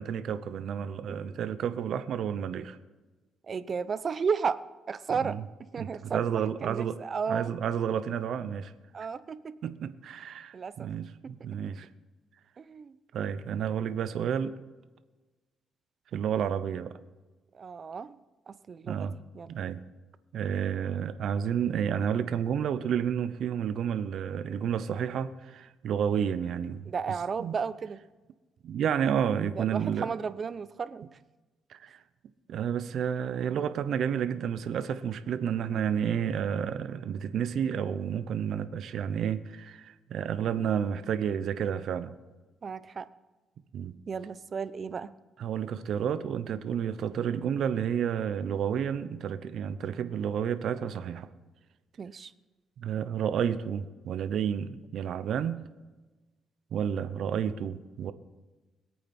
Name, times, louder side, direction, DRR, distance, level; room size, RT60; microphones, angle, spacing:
voice 1, 0.0-2.8 5.2-5.4 5.8-7.0 7.3-8.7 9.6-11.9 13.1-14.6 16.1-17.0 18.9-19.2 19.5-19.8 20.3-26.9 27.4-27.5 28.6-30.1 31.7-32.0 32.5-42.1 43.7-44.0 45.4-51.3 52.8-55.6 56.7-58.1, right 8 dB, 70° right, 11 dB, 0.8 m, -30 dB
voice 2, 3.5-4.6 4.9-5.4 5.7-7.5 8.9-9.6 10.5-10.9 11.2-11.3 12.6-12.9 17.5-18.2 18.5-19.1 19.3-19.5 26.8-28.0 29.6-31.2 42.6-43.1 44.1-45.1 52.0-52.3, right 6 dB, 45° right, 14 dB, 0.7 m, -33 dB
22.0 x 8.7 x 4.4 m, 1.2 s
cardioid pair, 90°, 0 cm